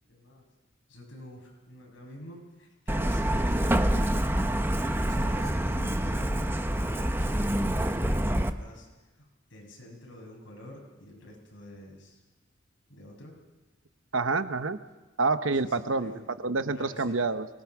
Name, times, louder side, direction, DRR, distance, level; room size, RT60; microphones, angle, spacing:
voice 1, 0.1-0.4 0.9-4.1 4.5-8.9 9.2-12.2 12.9-13.3 15.5-16.2 16.7-17.2, equal, 70° left, -1 dB, 6.7 m, -47 dB
Truck, 2.9-8.5, right 1 dB, 10° right, 0.9 m, -26 dB
voice 2, 14.1-14.8 15.2-17.5, right 3 dB, 75° right, 11 dB, 0.9 m, -28 dB
24.5 x 18.5 x 6.2 m, 1.2 s
head